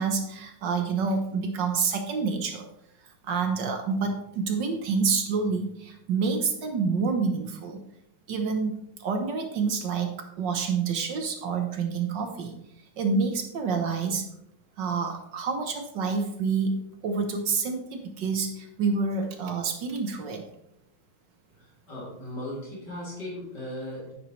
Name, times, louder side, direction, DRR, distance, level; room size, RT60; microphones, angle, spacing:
voice 1, 0.0-2.6 3.2-7.8 8.3-12.6 13.0-14.2 14.8-20.4, right 5 dB, 60° right, 5 dB, 1.5 m, -28 dB
voice 2, 21.6-24.1, left 1 dB, 50° left, -6 dB, 3.7 m, -37 dB
9.8 x 9.0 x 3.2 m, 0.79 s
omnidirectional pair, 2.3 m